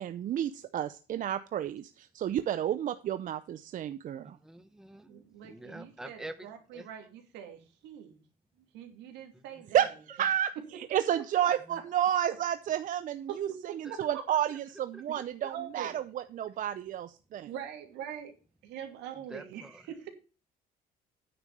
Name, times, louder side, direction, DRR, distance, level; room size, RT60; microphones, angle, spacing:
voice 1, 0.0-4.4 9.7-13.5 13.7-17.5, right 10 dB, 50° right, 0.6 m, -31 dB
voice 2, 4.2-6.9 9.3-9.6 11.7-11.8 13.8-14.0 14.9-15.5 19.1-19.9, right 1 dB, 5° right, 0.9 m, -47 dB
voice 3, 5.0-8.2 8.7-9.9 11.1-11.8 12.3-12.4 13.3-14.2 15.1-15.2 15.5-15.9 17.4-18.3 18.6-20.1, right 9 dB, 90° right, 2.6 m, -43 dB
9.5 x 6.0 x 5.4 m
cardioid pair, 110°, 17 cm